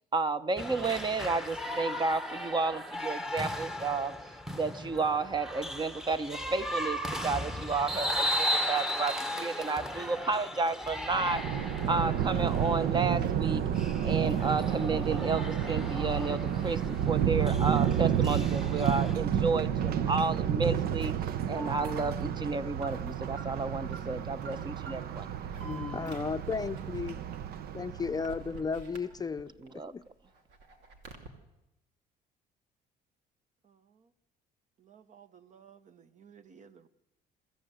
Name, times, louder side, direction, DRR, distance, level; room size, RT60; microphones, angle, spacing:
voice 1, 0.1-4.1 4.5-11.4 11.9-13.7 14.0-21.1 21.5-25.3 29.7-29.9, right 4 dB, 25° right, 13 dB, 0.9 m, -31 dB
sound 1, 0.6-19.1, equal, 5° right, 1.1 m, -36 dB
Thunder, 11.1-28.5, right 9 dB, 65° right, 0.8 m, -31 dB
Alarm, 21.5-29.7 30.1-31.3, right 2 dB, 90° right, 2.6 m, -48 dB
voice 2, 25.6-27.2 27.7-29.5 29.9-30.0, left 5 dB, 25° left, 9 dB, 0.6 m, -34 dB
voice 3, 33.6-34.1 34.8-36.9, right 7 dB, 45° right, 12 dB, 1.1 m, -57 dB
23.5 x 14.5 x 7.9 m, 0.93 s
cardioid pair, 110°, 17 cm